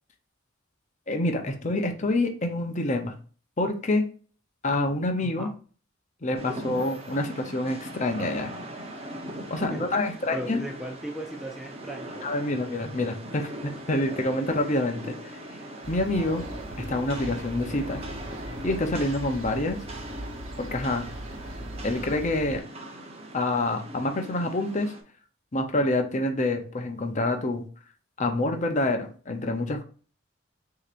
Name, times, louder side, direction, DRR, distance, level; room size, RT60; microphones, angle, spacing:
voice 1, 1.1-3.1 3.6-4.0 4.6-5.5 6.2-8.5 9.5-10.6 12.2-15.2 15.9-16.4 16.8-18.0 18.6-19.8 20.6-21.1 21.8-22.6 23.3-24.9 25.5-27.6 28.2-29.8, left 2 dB, 35° left, 5 dB, 0.7 m, -27 dB
voice 2, 5.2-5.5 10.0-12.4, right 1 dB, ahead, 1 dB, 0.4 m, -37 dB
Rain, 6.3-25.0, right 1 dB, 30° right, 0.8 m, -40 dB
sound 1, 15.8-22.6, equal, 75° right, 1.2 m, -40 dB
6.4 x 2.9 x 2.5 m, 0.40 s
head